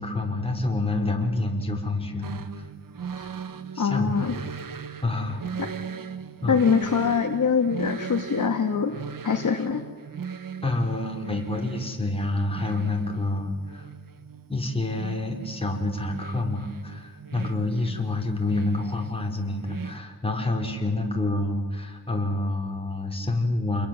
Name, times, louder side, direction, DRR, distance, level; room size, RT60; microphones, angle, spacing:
voice 1, 0.0-2.6 3.7-4.1 5.0-5.4 6.4-6.6 10.6-13.9 14.5-23.9, left 2 dB, 15° left, 1 dB, 5.1 m, -28 dB
sound 1, 2.2-20.0, right 6 dB, 70° right, 1.5 m, -39 dB
voice 2, 3.8-4.4 5.6-5.7 6.5-9.0 9.2-9.8, left 6 dB, 60° left, 5 dB, 1.8 m, -23 dB
28.5 x 22.0 x 7.8 m, 1.4 s
wide cardioid pair, 105°, 35 cm